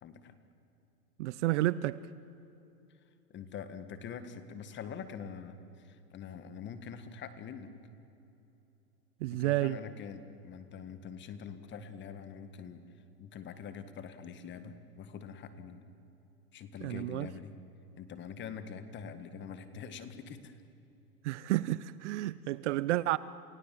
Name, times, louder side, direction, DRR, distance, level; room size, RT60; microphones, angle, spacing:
voice 1, 0.0-0.4 3.3-5.6 5.8-7.7 9.3-12.8 13.2-15.8 16.5-17.5 18.0-20.5, left 7 dB, 25° left, 11 dB, 1.7 m, -44 dB
voice 2, 1.2-2.0 9.2-9.8 16.8-17.3 21.2-23.2, right 16 dB, 50° right, 18 dB, 0.6 m, -30 dB
29.0 x 17.0 x 7.6 m, 2.9 s
hypercardioid pair, 130°, 47 cm